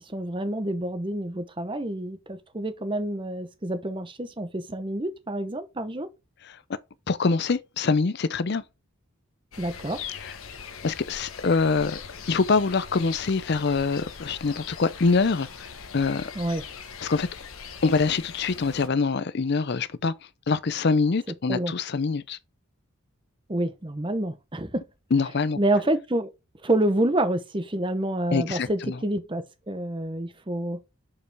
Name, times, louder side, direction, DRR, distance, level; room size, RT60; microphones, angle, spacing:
voice 1, 0.1-6.1 9.6-10.0 16.3-16.6 21.5-21.7 23.5-24.8 25.6-26.3 26.6-30.8, right 1 dB, 25° right, 0.8 m, -28 dB
voice 2, 7.1-8.6 10.2-10.3 10.8-12.0 12.3-16.3 17.0-17.3 17.8-20.1 20.5-22.4 25.1-25.6 28.3-29.0, left 4 dB, 50° left, 0.5 m, -24 dB
sound 1, 9.5-18.9, left 6 dB, 75° left, 1.1 m, -41 dB
6.7 x 5.3 x 3.4 m
head